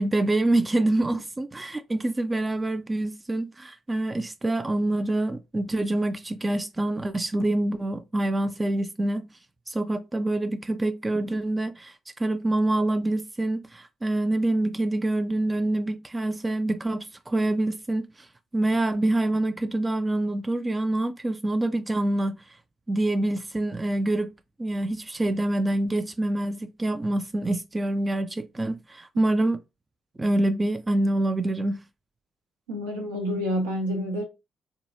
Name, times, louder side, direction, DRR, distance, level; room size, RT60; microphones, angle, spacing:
voice 1, 0.0-9.3 9.7-11.9 12.2-18.3 18.5-22.4 22.9-24.3 24.6-29.6 30.2-31.8, right 1 dB, 20° right, 0.3 m, -26 dB
voice 2, 32.7-34.2, equal, 80° right, 0.8 m, -28 dB
3.6 x 2.3 x 2.6 m
figure-of-eight pair, 40°, 0 cm